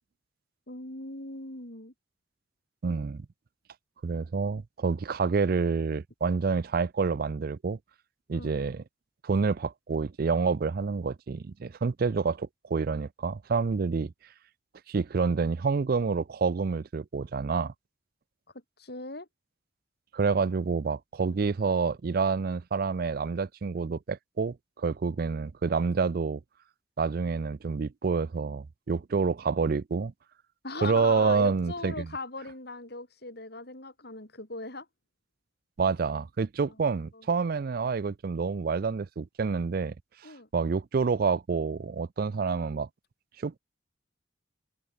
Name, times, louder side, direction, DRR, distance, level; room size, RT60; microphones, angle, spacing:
voice 1, 0.7-1.9 8.3-8.5 18.5-19.3 30.6-34.9 36.6-37.3 40.2-40.5, left 2 dB, 60° left, 4.6 m, -39 dB
voice 2, 2.8-3.3 4.0-7.8 8.3-8.8 9.2-14.1 14.9-17.7 20.1-26.4 27.0-30.1 30.8-32.1 35.8-39.9 40.5-42.9 43.4-43.6, right 5 dB, 50° right, 0.4 m, -28 dB
head